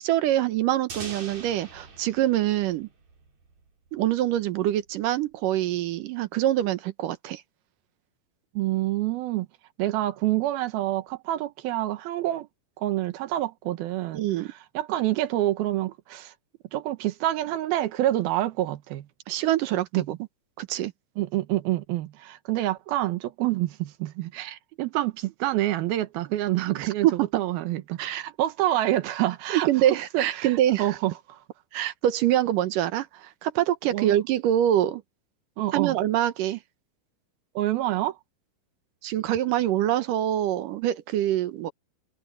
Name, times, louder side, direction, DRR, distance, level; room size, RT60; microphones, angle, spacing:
voice 1, 0.0-2.9 3.9-7.4 14.1-14.5 19.3-20.0 20.6-20.9 27.0-27.3 28.0-28.2 29.5-31.0 31.7-35.0 35.7-36.6 39.0-41.7, right 12 dB, 70° right, 2.5 m, -25 dB
sound 1, 0.9-3.7, right 5 dB, 50° right, 5.0 m, -42 dB
voice 2, 8.5-9.5 9.8-12.5 12.8-16.3 16.7-19.1 19.9-20.1 21.2-29.7 30.1-31.4 33.9-34.2 35.6-36.0 37.6-38.2, right 15 dB, 90° right, 3.0 m, -27 dB
omnidirectional pair, 4.2 m